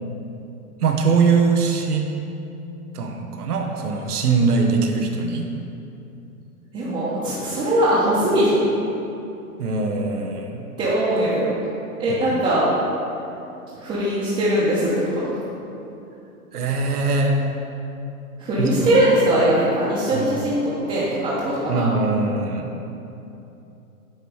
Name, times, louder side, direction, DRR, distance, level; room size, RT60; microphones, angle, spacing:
voice 1, 0.8-2.2 2.9-5.5 9.6-10.6 12.3-12.4 16.5-17.4 18.6-18.7 20.1-20.3 21.7-22.7, right 4 dB, 90° right, 2 dB, 1.0 m, -21 dB
voice 2, 6.7-8.7 10.8-11.6 12.0-12.7 13.7-15.4 18.4-21.9, right 1 dB, 15° right, -10 dB, 0.9 m, -21 dB
8.9 x 3.0 x 4.7 m, 2.8 s
hypercardioid pair, 140°, 44 cm